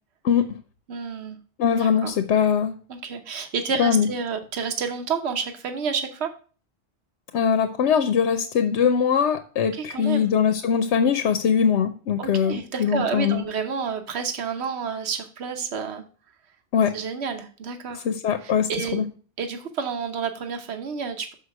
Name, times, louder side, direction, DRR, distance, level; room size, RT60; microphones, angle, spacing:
voice 1, 0.9-1.4 1.8-2.1 2.9-6.3 9.7-10.3 12.2-16.0 16.9-18.0 18.4-19.0 19.4-21.3, right 6 dB, 75° right, 7 dB, 1.2 m, -30 dB
voice 2, 1.6-2.7 3.8-4.1 7.3-13.5 16.7-16.9 18.0-19.0, left 7 dB, 90° left, 9 dB, 0.9 m, -22 dB
6.6 x 5.1 x 4.6 m, 0.38 s
omnidirectional pair, 1.1 m